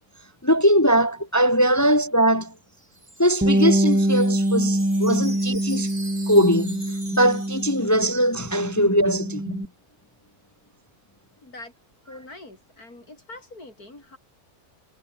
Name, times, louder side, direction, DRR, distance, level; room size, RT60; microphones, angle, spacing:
voice 1, 0.4-2.5 3.2-5.9 6.3-9.7, equal, 20° left, 0.5 m, -21 dB
Wind chime, 2.5-8.5, right 2 dB, 25° right, 3.6 m, -43 dB
Bass guitar, 3.4-8.1 8.4-9.7, right 1 dB, 5° right, 1.5 m, -24 dB
voice 2, 11.4-11.7 12.1-14.2, left 2 dB, 75° left, 7.1 m, -43 dB
omnidirectional pair, 1.6 m